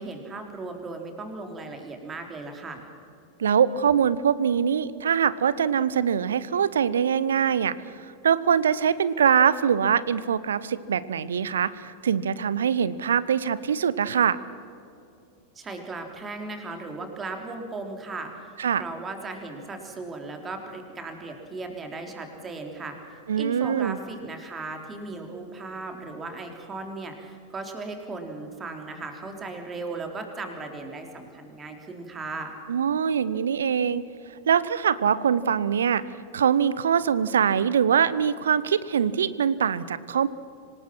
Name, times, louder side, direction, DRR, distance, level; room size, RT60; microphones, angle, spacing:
voice 1, 0.0-2.9 15.6-23.0 23.3-32.5, right 3 dB, 20° right, 4 dB, 3.3 m, -37 dB
voice 2, 3.4-7.8 8.2-14.4 18.6-18.8 23.3-24.0 32.7-34.0 34.5-36.0 36.3-40.3, right 7 dB, 65° right, 18 dB, 0.7 m, -23 dB
26.0 x 19.0 x 6.1 m, 2.6 s
figure-of-eight pair, 90°, 0 cm